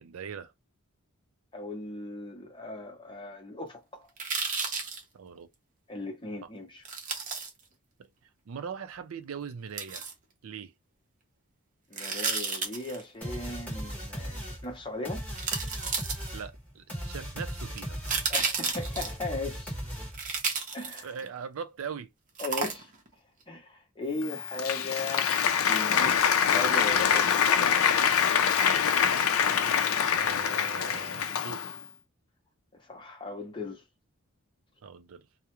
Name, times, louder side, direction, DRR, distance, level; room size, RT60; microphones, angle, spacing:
voice 1, 0.0-0.5 5.1-5.5 6.4-6.5 8.5-10.1 10.4-10.7 16.3-18.0 21.0-22.1 30.1-31.6 34.8-35.3, right 6 dB, 65° right, 0.4 m, -40 dB
voice 2, 1.5-4.1 5.9-6.8 11.9-15.2 18.3-19.7 20.7-21.1 22.4-22.9 23.5-27.7 32.8-33.8, left 2 dB, 20° left, 0.8 m, -37 dB
sound 1, 4.2-5.0 6.8-7.5 9.8-10.1 11.9-13.0 14.6-14.7 15.4-16.5 17.7-19.2 20.1-21.3 22.4-23.1 23.4-23.5, right 5 dB, 35° right, 0.7 m, -32 dB
sound 2, 13.2-20.4, equal, 5° left, 1.0 m, -38 dB
Applause, 24.2-31.8, left 7 dB, 70° left, 0.4 m, -25 dB
2.3 x 2.1 x 2.9 m
head